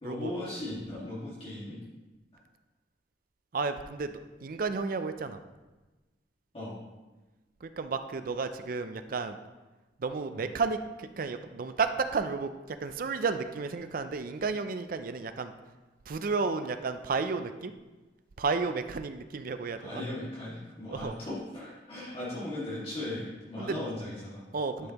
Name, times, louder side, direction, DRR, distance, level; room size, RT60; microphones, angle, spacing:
voice 1, 0.0-1.8 6.5-6.8 10.3-10.4 19.8-24.4 24.8-24.9, left 1 dB, 35° left, -9 dB, 1.9 m, -38 dB
voice 2, 3.5-4.1 4.4-5.4 7.6-9.4 10.0-15.5 16.1-17.7 18.4-20.0 20.9-21.2 23.6-23.8 24.5-24.9, right 4 dB, 50° right, 9 dB, 0.4 m, -32 dB
11.5 x 5.3 x 2.9 m, 1.2 s
head